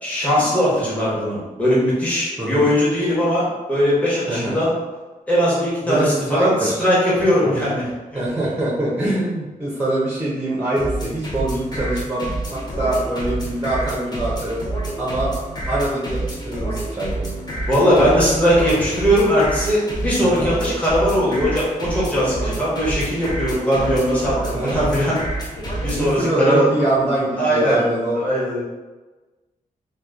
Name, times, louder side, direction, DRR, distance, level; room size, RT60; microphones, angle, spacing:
voice 1, 0.0-4.7 5.3-7.8 8.1-8.2 17.7-25.2 25.8-26.6 27.4-27.8 28.2-28.6, equal, 10° left, -8 dB, 1.0 m, -19 dB
voice 2, 2.4-2.7 4.3-4.6 5.8-6.8 7.4-7.7 8.1-14.6 15.0-15.3 15.7-17.3 20.1-20.5 24.5-24.9 25.8-28.2, right 1 dB, 10° right, -6 dB, 0.6 m, -24 dB
sound 1, 10.8-26.1, right 2 dB, 30° left, 0.6 m, -28 dB
2.9 x 2.1 x 3.5 m, 1.2 s
wide cardioid pair, 145°, 15 cm